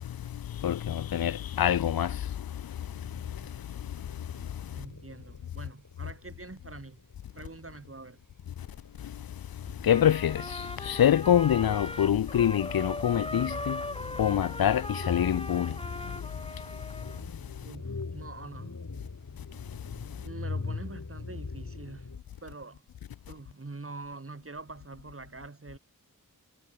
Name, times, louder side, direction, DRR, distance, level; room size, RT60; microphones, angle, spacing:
voice 1, 0.6-2.2 9.8-13.8 14.2-15.8, left 10 dB, 80° left, 0.5 m, -25 dB
sound 1, 2.9-22.2, left 4 dB, 55° left, 7.7 m, -42 dB
voice 2, 4.7-7.0 7.3-8.2 17.6-18.9 20.2-22.1 22.4-22.8 23.3-25.8, right 3 dB, 40° right, 3.9 m, -44 dB
Trumpet, 9.9-17.2, left 1 dB, 15° left, 3.2 m, -39 dB
wide cardioid pair, 95°, 35 cm